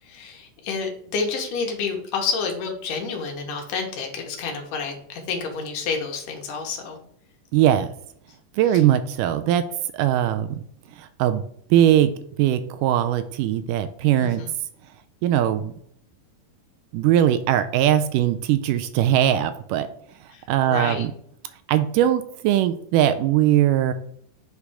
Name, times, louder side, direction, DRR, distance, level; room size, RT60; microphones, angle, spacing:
voice 1, 0.0-7.0 8.7-8.8 14.2-14.5 20.3-21.1, left 5 dB, 75° left, 2 dB, 2.6 m, -29 dB
voice 2, 7.5-7.9 8.6-9.6 9.9-10.7 11.0-11.4 11.7-12.1 12.4-14.4 15.2-15.7 16.9-19.9 20.5-21.1 21.7-23.9, right 11 dB, 80° right, 10 dB, 2.0 m, -20 dB
8.2 x 3.3 x 4.9 m, 0.64 s
omnidirectional pair, 3.9 m